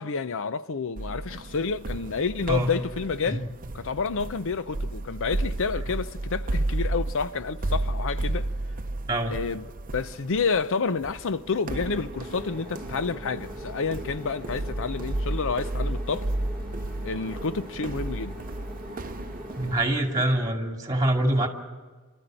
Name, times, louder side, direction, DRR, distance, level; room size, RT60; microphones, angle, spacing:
voice 1, 0.0-3.5 3.7-8.5 9.3-9.6 9.9-16.2 17.0-18.4, left 5 dB, 60° left, 0.6 m, -29 dB
sound 1, 1.0-20.5, right 2 dB, 40° right, 0.7 m, -33 dB
voice 2, 2.5-2.8 3.3-3.5 9.1-9.3 19.6-21.5, right 1 dB, 15° right, 2.5 m, -25 dB
sound 2, 12.2-19.8, left 1 dB, 5° left, 4.4 m, -42 dB
29.5 x 13.0 x 9.0 m
head